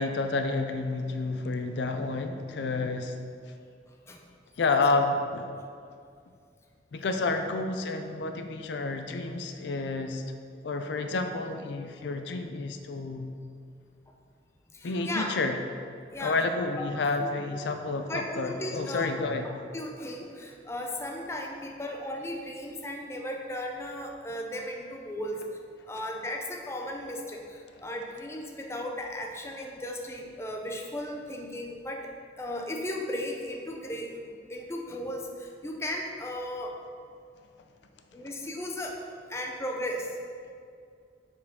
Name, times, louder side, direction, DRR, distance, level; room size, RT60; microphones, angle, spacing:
voice 1, 0.0-3.2 4.6-5.5 6.9-10.2 10.6-13.3 14.8-15.6 16.2-19.6, left 3 dB, 75° left, 6 dB, 0.4 m, -30 dB
voice 2, 14.7-15.3 16.1-16.4 16.8-16.9 17.5-17.6 18.1-19.1 19.7-25.5 25.9-32.1 32.4-36.7 38.1-39.0 39.3-40.2, left 1 dB, 15° left, 1 dB, 0.5 m, -36 dB
6.4 x 4.7 x 3.6 m, 2.3 s
head